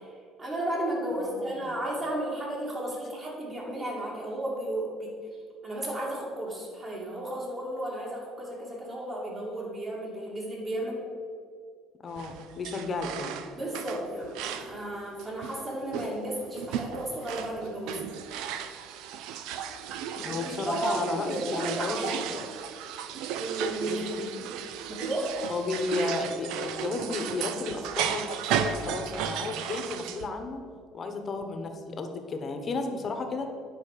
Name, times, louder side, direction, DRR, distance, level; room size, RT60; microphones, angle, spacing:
voice 1, 0.0-5.1 5.6-11.0 13.5-18.0 20.2-22.2 23.4-24.5 24.8-25.5, right 1 dB, 25° right, -3 dB, 2.6 m, -33 dB
voice 2, 1.1-1.7 12.0-13.4 20.2-22.5 23.8-24.4 25.5-28.3 28.6-30.6 30.9-33.5, left 3 dB, 30° left, 5 dB, 1.1 m, -33 dB
sound 1, 12.1-14.8 15.2-30.3, right 8 dB, 80° right, 0.5 m, -35 dB
9.8 x 4.7 x 6.7 m, 2.1 s
cardioid pair, 135°, 0 cm